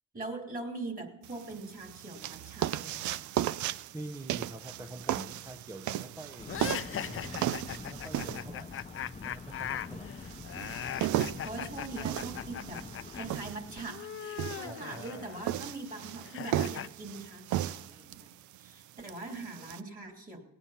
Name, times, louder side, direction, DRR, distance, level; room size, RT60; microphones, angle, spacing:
voice 1, 0.1-3.3 8.4-8.6 9.9-10.7 11.4-12.9 13.1-18.3 18.6-20.4, right 2 dB, 30° right, 3 dB, 3.0 m, -42 dB
sound 1, 1.2-19.8, right 13 dB, 75° right, 0.5 m, -36 dB
voice 2, 3.9-6.7 7.1-8.8 9.2-10.1 11.4-11.6 14.7-15.2, right 1 dB, 10° right, 7 dB, 0.7 m, -46 dB
sound 2, 6.4-13.8, left 4 dB, 20° left, 0.8 m, -46 dB
sound 3, 6.5-13.3 13.5-16.9, left 10 dB, 45° left, 0.5 m, -40 dB
18.5 x 9.1 x 5.7 m, 0.99 s
cardioid pair, 90°, 30 cm